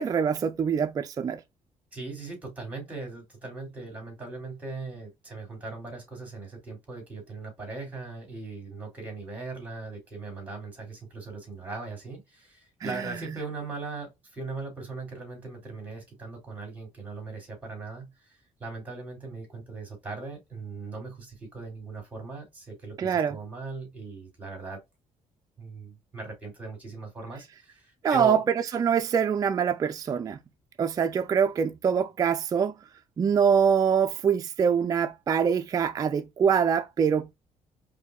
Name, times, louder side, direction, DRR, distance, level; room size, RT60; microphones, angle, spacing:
voice 1, 0.0-1.4 12.8-12.9 23.0-23.4 28.0-28.4 28.7-30.4 30.8-32.7 33.2-37.3, right 7 dB, 30° right, 0.4 m, -24 dB
voice 2, 1.9-24.8 25.6-28.4, right 3 dB, 10° right, 2.5 m, -39 dB
5.0 x 2.6 x 2.3 m
cardioid pair, 145°, 13 cm